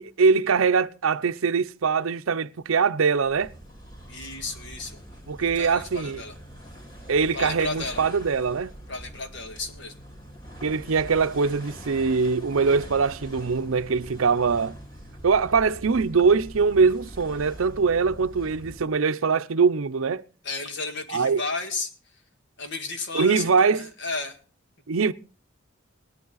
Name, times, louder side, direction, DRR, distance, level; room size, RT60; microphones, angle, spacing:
voice 1, 0.0-3.5 5.3-6.2 7.1-8.7 10.6-14.8 15.2-20.2 21.1-21.4 23.1-23.9 24.9-25.1, right 5 dB, 80° right, 0.6 m, -22 dB
sound 1, 3.2-19.0, equal, 25° left, 2.9 m, -43 dB
voice 2, 4.1-5.0 5.4-6.3 7.3-8.0 8.9-9.9 20.4-21.9 22.6-23.5 23.7-24.4, left 3 dB, 55° left, 1.8 m, -33 dB
18.0 x 11.0 x 4.0 m
head